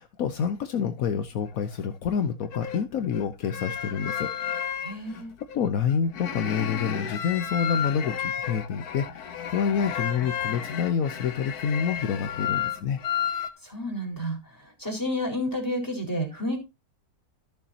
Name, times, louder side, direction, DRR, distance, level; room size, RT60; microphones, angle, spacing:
voice 1, 0.0-4.3 5.0-5.2 5.5-13.0, left 7 dB, 70° left, 8 dB, 1.2 m, -28 dB
sound 1, 1.5-1.9 2.4-13.5, left 9 dB, 90° left, 1.6 m, -32 dB
voice 2, 4.8-5.3 13.6-16.6, equal, 10° left, -1 dB, 4.1 m, -31 dB
14.0 x 7.1 x 2.8 m, 0.24 s
omnidirectional pair, 1.6 m